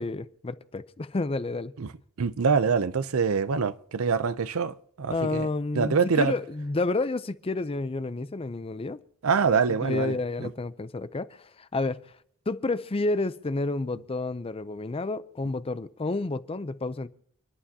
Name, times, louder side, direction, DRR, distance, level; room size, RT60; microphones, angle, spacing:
voice 1, 0.0-1.7 5.1-9.0 9.4-12.0 12.5-17.1, left 2 dB, 25° left, 0.5 m, -30 dB
voice 2, 2.2-5.5 5.8-6.3 9.2-10.5, right 5 dB, 70° right, 0.6 m, -25 dB
30.0 x 11.5 x 2.8 m
head